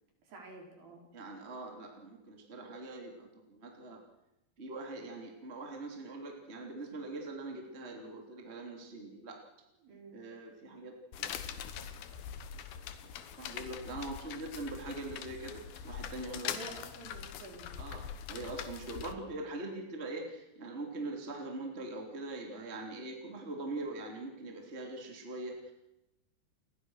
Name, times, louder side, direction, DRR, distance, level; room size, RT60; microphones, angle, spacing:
voice 1, 0.3-1.1 9.8-10.2 16.5-17.7 19.2-19.3, right 2 dB, 60° right, 1 dB, 6.5 m, -49 dB
voice 2, 1.1-4.0 4.6-9.4 10.1-11.3 11.9-12.0 13.4-16.5 17.8-18.0 18.3-25.7, right 2 dB, 15° right, 2 dB, 3.0 m, -42 dB
sound 1, 11.1-19.1, left 9 dB, 70° left, 3.0 m, -43 dB
29.5 x 21.5 x 6.5 m, 0.93 s
omnidirectional pair, 4.7 m